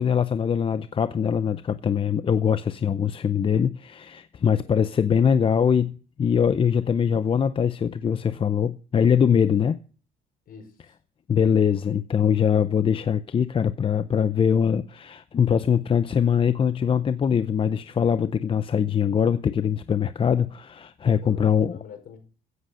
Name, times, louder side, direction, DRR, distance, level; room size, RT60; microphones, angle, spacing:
voice 1, 0.0-9.8 11.3-21.8, left 7 dB, 30° left, 0.6 m, -22 dB
voice 2, 10.5-10.9 21.1-22.2, left 7 dB, 60° left, 5.1 m, -45 dB
16.0 x 8.1 x 6.4 m
cardioid pair, 110°, 17 cm